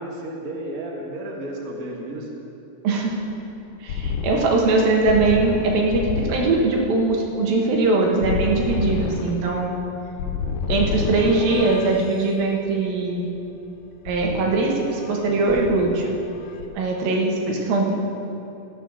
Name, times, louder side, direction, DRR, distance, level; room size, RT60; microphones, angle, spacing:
voice 1, 0.0-2.3, right 1 dB, 50° right, -1 dB, 0.9 m, -32 dB
voice 2, 2.8-3.2 3.8-9.7 10.7-13.3 14.1-16.2 16.7-17.9, right 3 dB, 70° right, 0 dB, 3.1 m, -21 dB
sound 1, 3.1-12.2 14.1-15.2 15.5-16.7, left 5 dB, 85° left, 2.8 m, -29 dB
13.5 x 10.0 x 6.4 m, 2.9 s
omnidirectional pair, 4.4 m